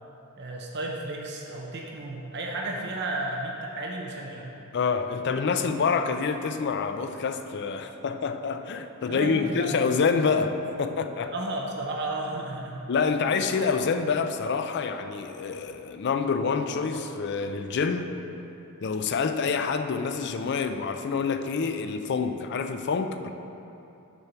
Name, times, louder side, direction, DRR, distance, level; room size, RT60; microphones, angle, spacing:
voice 1, 0.4-4.6 9.1-9.8 11.3-12.8, right 2 dB, 50° right, 0 dB, 0.7 m, -33 dB
voice 2, 4.7-11.3 12.9-18.1 18.8-23.3, left 5 dB, 50° left, 8 dB, 0.4 m, -27 dB
sound 1, 13.4-14.0 14.9-15.1 16.9-17.2, right 3 dB, 70° right, 1.0 m, -47 dB
6.8 x 4.5 x 6.8 m, 2.9 s
head